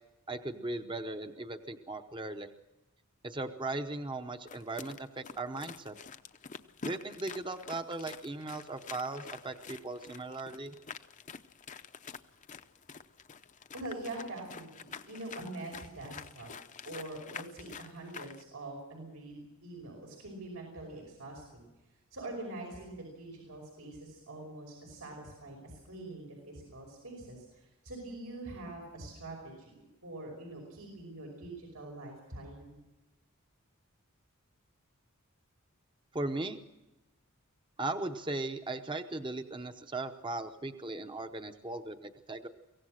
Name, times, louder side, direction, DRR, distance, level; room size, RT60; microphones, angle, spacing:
voice 1, 0.3-2.5 3.2-6.0 6.8-10.7 36.1-36.6 37.8-42.5, right 2 dB, 20° right, 7 dB, 0.8 m, -38 dB
sound 1, 4.5-18.4, left 6 dB, 35° left, 0.7 m, -47 dB
voice 2, 13.7-16.5 16.8-21.7 22.1-32.8, right 2 dB, 90° right, 1 dB, 5.4 m, -44 dB
23.5 x 17.0 x 6.5 m, 1.0 s
head